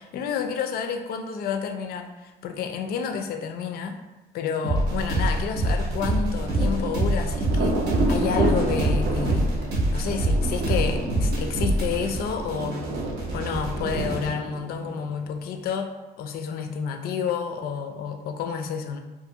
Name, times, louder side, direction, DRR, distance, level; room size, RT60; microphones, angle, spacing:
voice 1, 0.0-4.0 4.3-9.5 9.9-12.8 13.3-19.0, left 6 dB, 65° left, 6 dB, 0.4 m, -30 dB
sound 1, 4.6-14.3, right 1 dB, 85° right, 0.8 m, -25 dB
Thunder, 5.9-15.4, right 2 dB, 65° right, 0.5 m, -30 dB
2.5 x 2.5 x 2.7 m, 1.1 s
cardioid pair, 110°, 17 cm